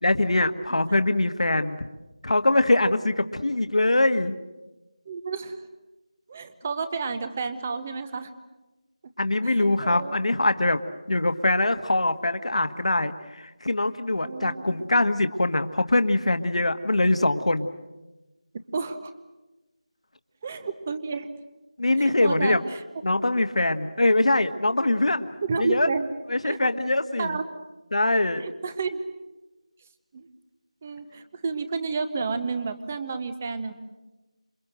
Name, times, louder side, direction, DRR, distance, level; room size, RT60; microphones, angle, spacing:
voice 1, 0.0-1.9 2.2-4.3 9.2-10.8 11.1-17.7 21.8-22.6 23.0-25.3 25.6-25.9 26.3-27.4 27.9-28.4, left 2 dB, 65° left, 8 dB, 1.7 m, -23 dB
voice 2, 5.1-5.6 6.3-8.3 9.4-10.1 14.2-14.6 18.7-19.1 20.4-21.3 22.0-22.8 25.4-26.1 26.4-26.7 27.2-27.4 28.4-29.0 30.1-30.3 30.8-33.7, right 4 dB, 15° right, 11 dB, 0.8 m, -31 dB
28.0 x 24.0 x 7.9 m, 1.1 s
figure-of-eight pair, 175°, 4 cm